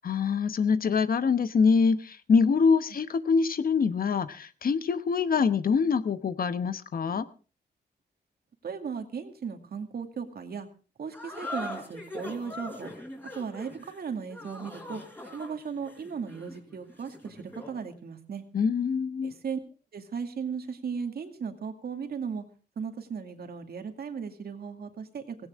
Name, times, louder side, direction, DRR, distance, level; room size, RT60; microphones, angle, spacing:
voice 1, 0.0-7.2 18.5-19.3, left 5 dB, 55° left, 1.0 m, -25 dB
voice 2, 8.6-10.7 11.0-12.9 13.3-15.0 15.3-18.4 19.2-19.6 19.9-22.4 22.8-25.4, right 6 dB, 65° right, 2.3 m, -36 dB
sound 1, 11.1-17.8, left 1 dB, 10° left, 4.4 m, -41 dB
17.0 x 17.0 x 3.7 m
wide cardioid pair, 105°, 18 cm